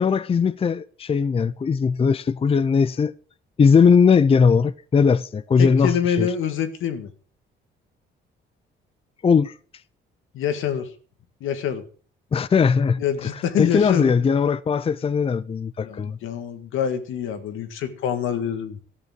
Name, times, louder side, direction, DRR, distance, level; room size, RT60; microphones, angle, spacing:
voice 1, 0.0-3.1 3.6-6.3 9.2-9.5 12.3-13.0 13.6-16.2, left 6 dB, 30° left, 0.5 m, -19 dB
voice 2, 5.6-7.1 10.3-10.9 11.4-11.8 13.0-14.2 15.8-18.8, left 8 dB, 85° left, 1.8 m, -26 dB
13.5 x 7.0 x 7.7 m
cardioid pair, 90°, 20 cm